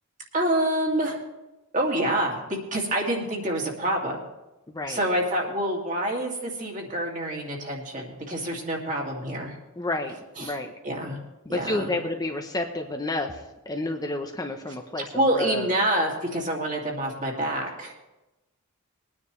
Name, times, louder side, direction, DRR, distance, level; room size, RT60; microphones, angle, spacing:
voice 1, 0.3-1.2 1.7-2.4 2.7-4.2 4.9-9.5 10.4-10.5 10.8-11.2 11.5-12.0 15.1-18.0, right 1 dB, 35° right, -1 dB, 2.4 m, -27 dB
voice 2, 4.7-5.0 9.8-10.1 10.4-10.7 11.4-15.7, left 2 dB, 20° left, 3 dB, 0.8 m, -30 dB
21.5 x 9.8 x 3.2 m, 1.0 s
head